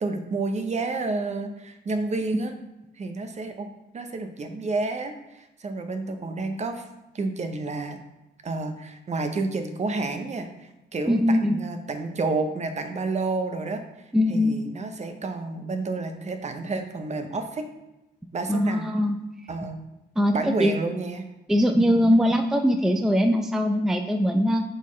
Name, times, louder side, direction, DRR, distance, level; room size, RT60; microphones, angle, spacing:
voice 1, 0.0-2.5 3.0-3.7 3.9-6.9 7.1-8.0 8.4-13.8 14.3-17.7 18.3-18.9 19.5-19.8 20.3-21.3, right 3 dB, 35° right, 7 dB, 0.7 m, -30 dB
voice 2, 11.1-11.6 14.1-14.6 18.5-19.2 20.2-20.3 20.6-20.7 21.5-24.6, equal, ahead, 5 dB, 0.5 m, -21 dB
7.9 x 3.9 x 3.2 m, 0.96 s
cardioid pair, 90°, 20 cm